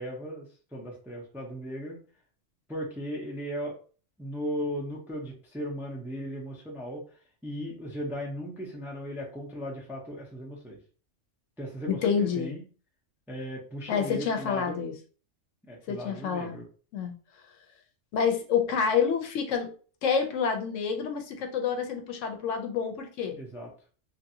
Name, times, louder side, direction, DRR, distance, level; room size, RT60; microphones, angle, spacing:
voice 1, 0.0-2.0 2.7-3.8 4.2-10.8 11.6-12.6 13.3-14.8 15.6-16.6 23.3-23.7, equal, 5° right, -2 dB, 0.4 m, -37 dB
voice 2, 11.9-12.5 13.9-14.9 15.9-16.6 16.9-17.1 18.1-19.7 20.0-23.4, left 6 dB, 80° left, 5 dB, 1.0 m, -28 dB
2.9 x 2.6 x 2.7 m, 0.39 s
omnidirectional pair, 1.3 m